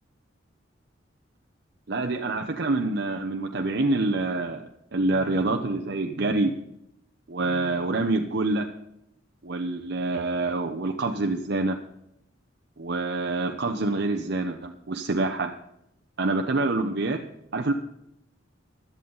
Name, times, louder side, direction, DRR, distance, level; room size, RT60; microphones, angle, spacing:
voice 1, 1.9-6.5 7.3-8.7 9.4-11.8 12.8-15.5 16.2-17.2 17.5-17.7, right 2 dB, 60° right, 4 dB, 0.9 m, -26 dB
16.5 x 12.5 x 4.0 m, 0.79 s
head